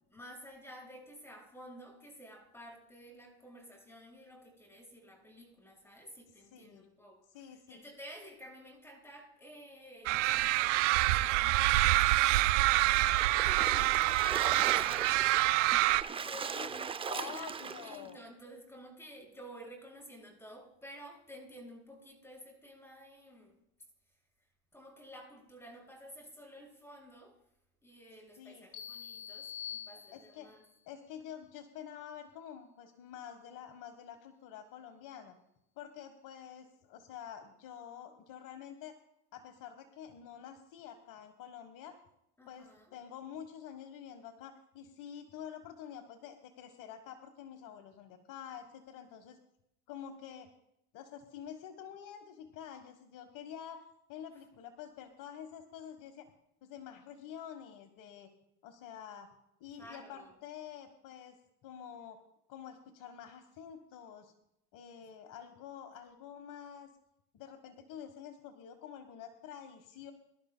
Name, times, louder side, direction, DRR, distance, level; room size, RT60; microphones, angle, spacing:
voice 1, 0.1-17.5 17.8-23.6 24.7-27.4 27.8-30.6 42.4-42.9 59.7-60.3, equal, 5° left, 0 dB, 6.2 m, -52 dB
voice 2, 6.5-6.9 7.3-7.8 16.5-16.7 17.1-18.2 28.4-28.7 30.1-30.5 30.9-35.4 35.8-38.9 39.3-42.0 42.5-49.4 49.9-50.5 50.9-56.3 56.6-58.3 58.6-59.3 59.6-62.2 62.5-64.3 64.7-66.9 67.3-70.1, left 9 dB, 60° left, 7 dB, 1.3 m, -48 dB
Murder Of Crows at Yellagonga, 10.1-16.0, right 17 dB, 90° right, 0.6 m, -26 dB
Splash splatter, 13.2-18.1, right 6 dB, 15° right, 0.4 m, -39 dB
sound 1, 28.7-30.6, left 9 dB, 45° left, 1.5 m, -45 dB
23.5 x 12.0 x 2.2 m, 0.78 s
supercardioid pair, 105°, 35 cm